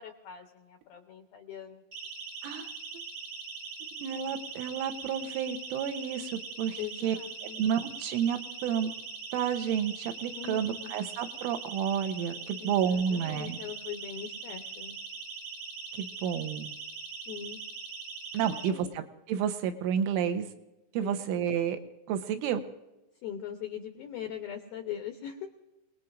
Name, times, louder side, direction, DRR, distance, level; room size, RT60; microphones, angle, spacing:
voice 1, 0.0-1.8 6.8-7.6 10.3-10.9 12.6-15.0 17.3-17.6 18.4-18.9 21.0-21.4 23.2-25.5, left 9 dB, 85° left, 4 dB, 2.1 m, -41 dB
Siren, 1.9-18.7, right 4 dB, 65° right, 1.3 m, -41 dB
voice 2, 2.4-2.7 4.0-7.2 7.6-8.9 9.3-13.6 15.9-16.7 18.3-20.5 20.9-21.8 22.1-22.6, right 8 dB, 85° right, 7 dB, 3.4 m, -30 dB
28.5 x 19.5 x 2.6 m, 0.98 s
omnidirectional pair, 5.7 m